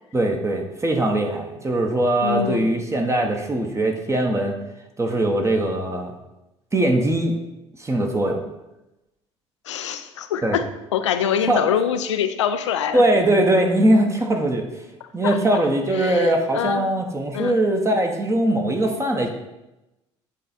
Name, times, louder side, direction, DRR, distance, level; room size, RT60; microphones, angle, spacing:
voice 1, 0.1-4.5 5.0-6.1 6.7-7.3 7.8-8.4 10.4-10.6 11.5-11.7 12.9-14.6 15.1-19.3, right 1 dB, 20° right, 3 dB, 1.0 m, -21 dB
voice 2, 2.2-2.7 9.6-13.0 15.2-15.6 15.9-16.8 17.3-17.6, left 9 dB, 80° left, 10 dB, 0.4 m, -25 dB
8.3 x 3.3 x 4.1 m, 0.96 s
figure-of-eight pair, 55°, 15 cm